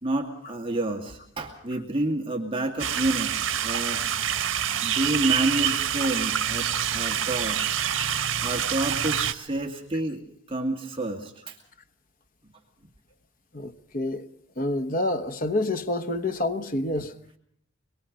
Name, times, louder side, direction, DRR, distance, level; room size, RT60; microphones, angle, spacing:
voice 1, 0.0-3.3 3.6-4.0 4.8-7.7 8.4-10.2 10.5-11.6 17.0-17.1, right 2 dB, 25° right, 2.3 m, -29 dB
sound 1, 2.8-9.3, right 9 dB, 80° right, 1.5 m, -26 dB
voice 2, 13.5-14.2 14.6-17.1, left 2 dB, 45° left, 1.1 m, -28 dB
25.0 x 22.5 x 5.3 m
head